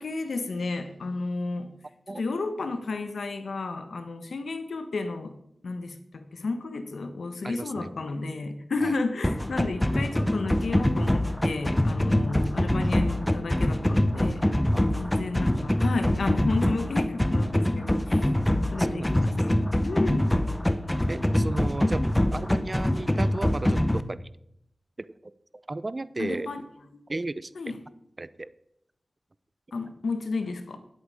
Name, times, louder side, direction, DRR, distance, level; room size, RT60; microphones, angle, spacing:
voice 1, 0.0-1.7 2.1-5.3 5.6-14.5 14.9-18.3 18.7-19.6 19.8-20.3 26.2-26.6 26.9-27.0 27.5-27.8 29.7-30.8, left 3 dB, 85° left, 8 dB, 1.1 m, -32 dB
voice 2, 7.4-7.9 8.8-8.9 12.6-12.8 13.8-14.0 14.7-15.2 18.8-19.1 21.1-24.2 25.7-26.5 27.1-27.5 28.2-28.5, right 2 dB, 40° right, 16 dB, 0.6 m, -34 dB
sound 1, 9.2-24.0, left 1 dB, 15° left, 0.8 m, -24 dB
10.5 x 8.1 x 4.9 m, 0.75 s
cardioid pair, 50°, 0 cm